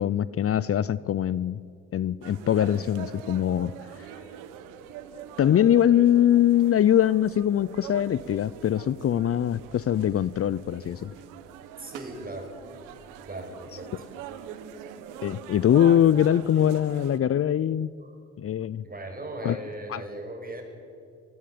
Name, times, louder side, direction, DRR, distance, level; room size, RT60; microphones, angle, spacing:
voice 1, 0.0-1.6 1.9-3.7 5.4-11.1 15.2-17.9 18.4-18.8 19.4-19.6 19.9-20.0, left 10 dB, 45° left, 19 dB, 0.6 m, -22 dB
sound 1, 2.2-17.2, right 9 dB, 85° right, 1.5 m, -43 dB
voice 2, 11.8-12.5 13.2-14.4 18.0-18.1 18.8-20.6, right 1 dB, 30° right, 3 dB, 7.1 m, -38 dB
24.0 x 17.5 x 8.6 m, 2.4 s
supercardioid pair, 55°, 31 cm